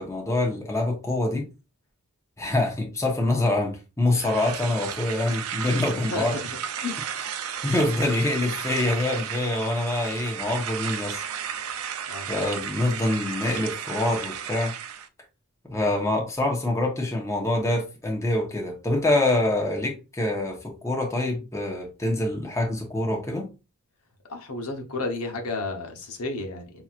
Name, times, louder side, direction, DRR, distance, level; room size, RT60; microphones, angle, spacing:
voice 1, 0.0-1.5 2.4-6.4 7.6-11.2 12.3-14.7 15.7-23.5, left 2 dB, 15° left, 0.9 m, -25 dB
sound 1, 4.1-15.1, right 8 dB, 70° right, 0.5 m, -34 dB
voice 2, 6.1-7.0 12.1-12.3 24.3-26.6, left 3 dB, 80° left, 0.9 m, -32 dB
5.6 x 2.9 x 2.4 m
head